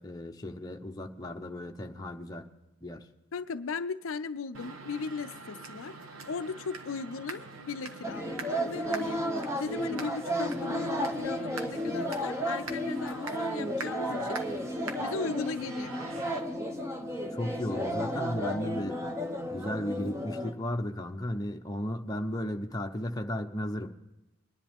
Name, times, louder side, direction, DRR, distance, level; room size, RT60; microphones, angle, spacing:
voice 1, 0.0-2.4 2.8-3.0 17.3-19.0 19.5-23.9, left 1 dB, 15° left, 3 dB, 0.8 m, -35 dB
voice 2, 3.3-6.0 6.3-14.4 15.0-15.9, left 5 dB, 70° left, 10 dB, 0.5 m, -37 dB
sound 1, 4.5-16.4, right 3 dB, 75° right, 1.2 m, -45 dB
sound 2, 8.0-20.5, equal, 15° right, 0.9 m, -33 dB
22.5 x 10.5 x 3.5 m, 1.0 s
head